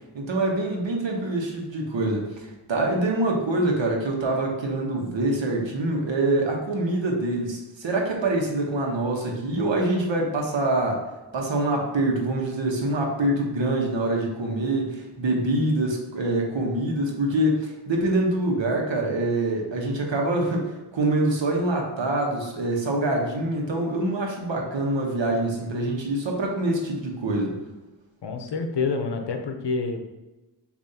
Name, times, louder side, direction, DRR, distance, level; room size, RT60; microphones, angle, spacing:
voice 1, 0.1-11.0 11.3-27.6, right 2 dB, 80° right, 0 dB, 1.1 m, -25 dB
voice 2, 28.2-30.0, left 4 dB, 65° left, 5 dB, 0.7 m, -27 dB
6.5 x 2.7 x 2.7 m, 1.1 s
wide cardioid pair, 70°, 44 cm